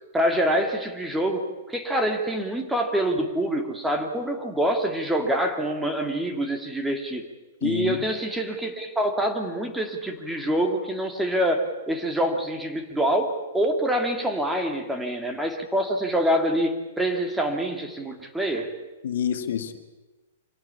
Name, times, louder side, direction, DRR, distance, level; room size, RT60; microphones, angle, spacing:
voice 1, 0.1-7.2 7.6-18.7, right 1 dB, 5° right, 4 dB, 2.7 m, -26 dB
voice 2, 7.6-8.0 19.0-19.8, left 9 dB, 65° left, 8 dB, 1.9 m, -27 dB
25.0 x 17.0 x 8.6 m, 1.2 s
figure-of-eight pair, 110°, 0 cm